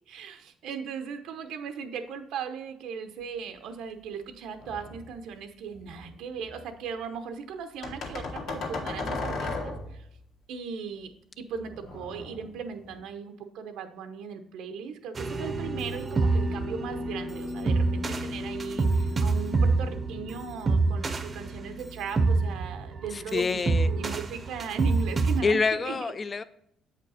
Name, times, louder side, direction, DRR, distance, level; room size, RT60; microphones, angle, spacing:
voice 1, 0.1-10.1 10.5-26.0, right 6 dB, 85° right, 7 dB, 0.8 m, -38 dB
sound 1, 4.6-5.2 5.7-6.7 7.8-10.1 11.6-13.0, left 3 dB, 65° left, 1.8 m, -36 dB
sound 2, 15.1-25.4, right 3 dB, 25° right, 0.6 m, -27 dB
voice 2, 23.1-23.9 25.4-26.4, left 4 dB, 25° left, 14 dB, 0.4 m, -27 dB
7.9 x 5.2 x 4.1 m, 0.71 s
cardioid pair, 145°, 0 cm